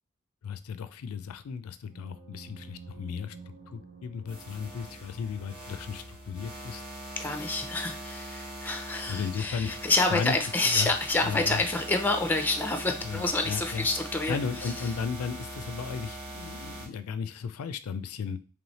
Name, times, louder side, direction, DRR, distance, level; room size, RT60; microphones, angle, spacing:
voice 1, 0.4-3.4 3.7-6.8 7.2-7.5 9.1-10.3 10.6-10.9 11.2-11.6 13.0-13.9 14.3-18.4, left 6 dB, 85° left, 12 dB, 0.4 m, -35 dB
sound 1, 1.8-6.4, right 3 dB, 75° right, 0.9 m, -50 dB
sound 2, 4.3-16.9, right 1 dB, 25° right, 1.1 m, -42 dB
voice 2, 7.2-14.9, left 2 dB, 10° left, 4 dB, 0.5 m, -28 dB
3.2 x 3.1 x 4.0 m, 0.36 s
head